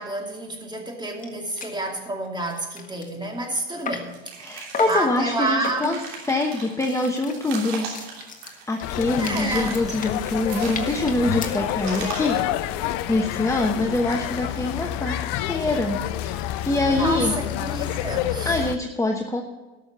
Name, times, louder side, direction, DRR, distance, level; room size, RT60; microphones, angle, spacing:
voice 1, 0.0-4.2 4.9-6.1 9.2-9.8 16.9-18.6, right 2 dB, 15° right, 2.5 m, -29 dB
sound 1, 0.9-1.0 1.2-1.3 1.6-1.8 2.2-4.2 4.7-5.1 5.6-6.1 6.6-12.0, left 4 dB, 25° left, 1.7 m, -36 dB
sound 2, 4.1-5.2 5.6-6.9 7.3-8.8 9.1-9.9 10.3-11.2 11.8-12.5, right 5 dB, 75° right, 3.2 m, -38 dB
voice 2, 4.4-6.0 6.2-7.9 8.7-12.8 13.1-17.3 18.4-19.4, left 2 dB, 10° left, 1.1 m, -24 dB
sound 3, 8.8-18.8, left 13 dB, 65° left, 0.7 m, -28 dB
13.0 x 6.5 x 6.7 m
hypercardioid pair, 90°, 30 cm